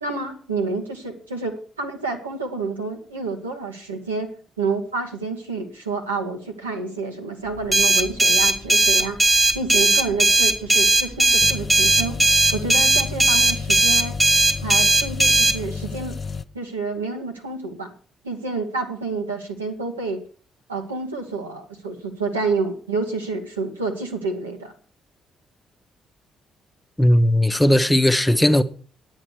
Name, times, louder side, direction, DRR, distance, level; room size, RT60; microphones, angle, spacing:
voice 1, 0.0-12.2 12.5-14.2 14.6-16.2 16.5-17.9 18.2-20.2 20.7-24.7, right 4 dB, 85° right, 1.5 m, -29 dB
sound 1, 7.7-15.6, right 2 dB, 15° right, 1.4 m, -17 dB
sound 2, 11.4-16.4, left 5 dB, 40° left, 0.6 m, -32 dB
voice 2, 27.0-28.6, left 1 dB, 10° left, 1.0 m, -17 dB
9.9 x 8.9 x 6.2 m
figure-of-eight pair, 40°, 0 cm